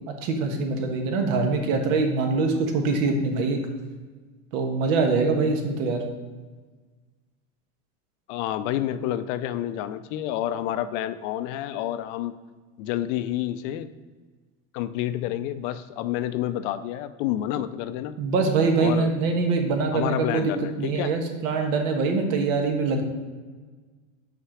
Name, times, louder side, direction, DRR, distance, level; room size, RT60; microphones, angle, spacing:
voice 1, 0.0-3.6 4.5-6.0 18.2-20.5 20.8-23.0, right 4 dB, 75° right, 4 dB, 1.3 m, -24 dB
voice 2, 8.3-12.3 12.8-13.9 14.7-18.2 18.8-19.1 19.9-21.2, left 12 dB, 65° left, 12 dB, 0.5 m, -29 dB
5.8 x 4.5 x 4.9 m, 1.4 s
supercardioid pair, 140°, 40 cm